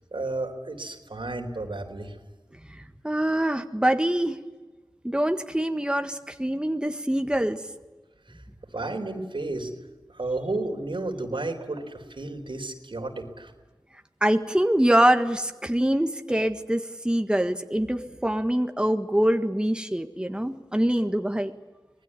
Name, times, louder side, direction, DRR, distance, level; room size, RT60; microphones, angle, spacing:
voice 1, 0.1-2.2 8.3-8.4 8.7-9.7 10.1-13.5, right 2 dB, 90° right, 4 dB, 4.0 m, -32 dB
voice 2, 2.7-4.4 5.0-7.6 14.2-21.5, right 1 dB, 10° right, 7 dB, 1.6 m, -24 dB
26.0 x 20.0 x 9.9 m, 1.2 s
wide cardioid pair, 55°, 8 cm